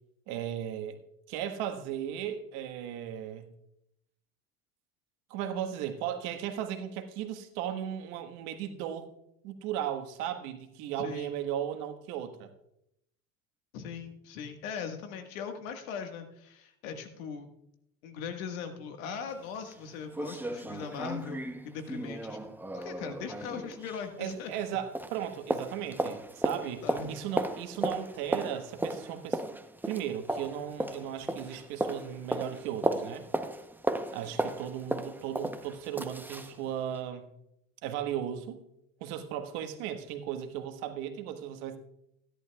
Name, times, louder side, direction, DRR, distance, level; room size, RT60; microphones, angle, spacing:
voice 1, 0.3-1.0 1.3-3.5 5.3-9.1 9.4-12.5 24.2-29.4 29.9-33.2 34.1-37.3 37.8-38.6 39.0-41.8, right 10 dB, 65° right, 7 dB, 1.5 m, -36 dB
voice 2, 11.0-11.3 13.7-17.5 18.0-24.5 26.8-27.1 34.2-34.4, left 6 dB, 75° left, 6 dB, 1.6 m, -40 dB
sound 1, 19.3-19.4 19.7-19.8 20.1-24.7 24.9-36.6 36.9-37.0, right 1 dB, 5° right, 0.8 m, -35 dB
16.5 x 11.0 x 2.3 m, 0.79 s
hypercardioid pair, 85°, 41 cm